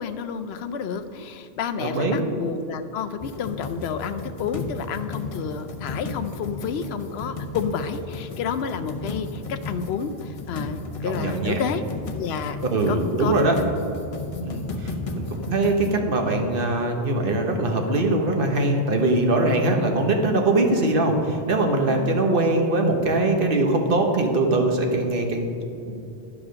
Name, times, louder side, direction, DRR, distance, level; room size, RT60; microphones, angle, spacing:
voice 1, 0.0-11.9 12.1-12.6 12.9-13.3 14.3-14.5 21.9-22.2, left 6 dB, 85° left, 9 dB, 0.8 m, -30 dB
voice 2, 1.8-2.2 11.0-11.5 12.7-13.5 14.4-26.0, right 2 dB, 60° right, 3 dB, 1.2 m, -22 dB
sound 1, 3.2-16.0, left 3 dB, 40° left, 0.6 m, -34 dB
11.0 x 5.0 x 6.2 m, 2.8 s
omnidirectional pair, 1.0 m